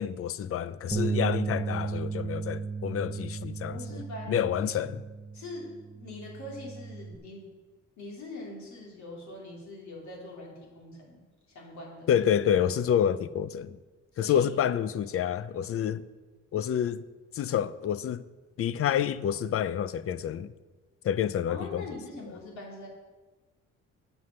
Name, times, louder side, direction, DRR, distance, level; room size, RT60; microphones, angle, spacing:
voice 1, 0.0-3.8 4.3-5.0 12.1-13.8 14.2-16.0 16.5-17.0 17.3-18.2 18.6-20.5 21.0-21.8, left 9 dB, 50° left, 0.5 m, -28 dB
Bass guitar, 0.9-7.2, right 5 dB, 5° right, 0.8 m, -35 dB
voice 2, 3.7-4.4 5.3-7.4 8.0-11.2 11.5-12.2 14.1-14.5 21.5-22.9, left 2 dB, 70° left, 3.1 m, -43 dB
7.9 x 7.1 x 6.5 m
cardioid pair, 90°, 30 cm